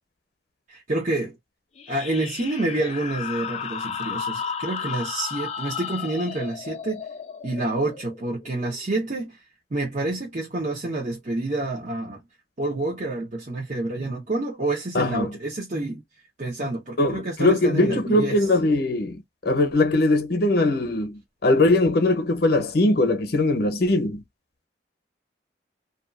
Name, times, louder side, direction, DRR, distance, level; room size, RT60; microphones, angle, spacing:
voice 1, 0.7-1.3 1.9-7.0 7.4-9.4 9.7-12.2 12.6-16.0 16.4-18.4, right 2 dB, 45° right, 0.9 m, -28 dB
sound 1, 1.8-9.0, left 7 dB, 40° left, 0.5 m, -34 dB
voice 2, 14.9-15.3 17.0-24.2, left 2 dB, 65° left, 0.8 m, -21 dB
2.6 x 2.4 x 2.5 m
head